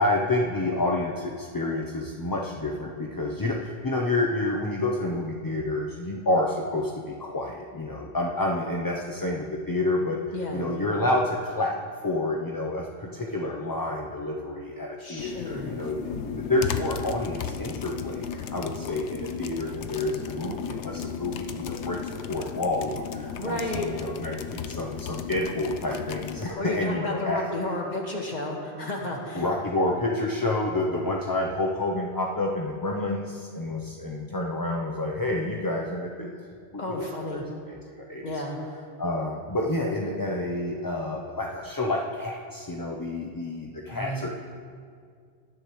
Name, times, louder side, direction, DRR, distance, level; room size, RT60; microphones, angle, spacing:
voice 1, 0.0-10.2 10.5-11.8 12.0-22.0 22.3-27.4 29.3-36.4 36.7-37.1 37.3-37.4 37.9-38.4 39.0-44.3, left 2 dB, 25° left, -1 dB, 0.6 m, -29 dB
voice 2, 10.3-10.6 15.0-15.7 23.4-23.9 26.6-29.5 36.8-37.4 38.2-38.6 43.9-44.2, left 1 dB, 40° left, 0 dB, 1.7 m, -32 dB
sound 1, 15.2-26.5, left 7 dB, 85° left, 0.9 m, -35 dB
19.0 x 10.0 x 3.1 m, 2.1 s
omnidirectional pair, 1.1 m